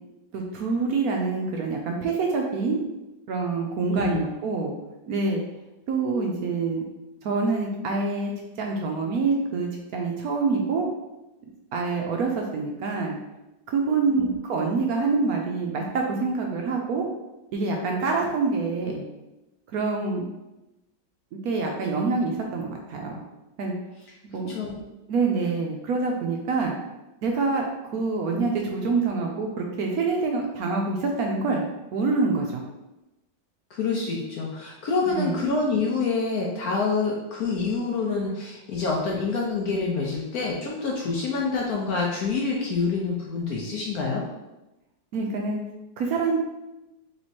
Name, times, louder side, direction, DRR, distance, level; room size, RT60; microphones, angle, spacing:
voice 1, 0.3-2.8 3.3-4.7 5.1-5.4 5.9-6.8 7.2-8.3 8.6-10.9 11.7-13.2 13.7-17.1 17.5-19.0 19.7-20.2 21.4-23.2 23.6-23.7 24.3-24.5 25.1-26.7 27.2-27.7 27.9-31.6 31.9-32.6 35.1-35.4 45.1-45.6 46.0-46.4, right 4 dB, 70° right, 1 dB, 0.9 m, -26 dB
voice 2, 3.9-4.2 14.1-14.3 24.5-24.8 33.7-44.2, left 4 dB, 65° left, -2 dB, 1.0 m, -27 dB
3.4 x 3.1 x 4.1 m, 0.98 s
omnidirectional pair, 2.0 m